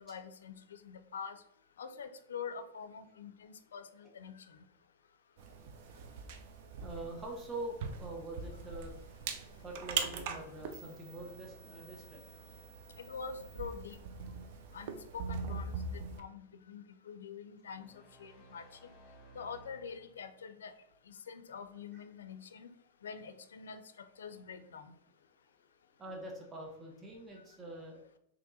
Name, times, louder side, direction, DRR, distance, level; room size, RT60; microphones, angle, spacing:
voice 1, 0.0-1.4 1.8-4.6 13.0-14.0 14.7-18.7 19.3-20.7 21.1-22.7 23.0-24.9, left 6 dB, 85° left, 11 dB, 0.4 m, -46 dB
sound 1, 5.4-16.2, right 5 dB, 60° right, 0.5 m, -42 dB
voice 2, 6.8-8.9 9.6-12.2 26.0-28.0, right 1 dB, 20° right, -1 dB, 0.9 m, -44 dB
sound 2, 17.7-20.4, right 1 dB, 35° left, 1.5 m, -59 dB
3.5 x 2.8 x 4.0 m, 0.77 s
hypercardioid pair, 115°, 0 cm